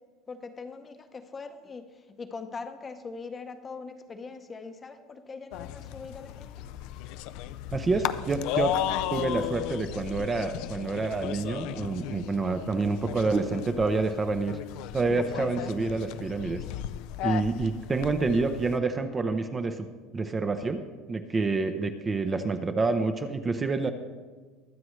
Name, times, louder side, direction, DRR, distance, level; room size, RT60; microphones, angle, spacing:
voice 1, 0.3-6.6, left 4 dB, 20° left, 7 dB, 0.8 m, -42 dB
sound 1, 5.5-18.8, left 12 dB, 65° left, 0.4 m, -35 dB
voice 2, 7.7-8.8 9.1-14.6 14.9-16.6 17.2-19.9 20.1-20.8 21.1-23.9, right 3 dB, 20° right, 8 dB, 0.6 m, -28 dB
22.5 x 7.6 x 3.2 m, 1.4 s
cardioid pair, 140°, 0 cm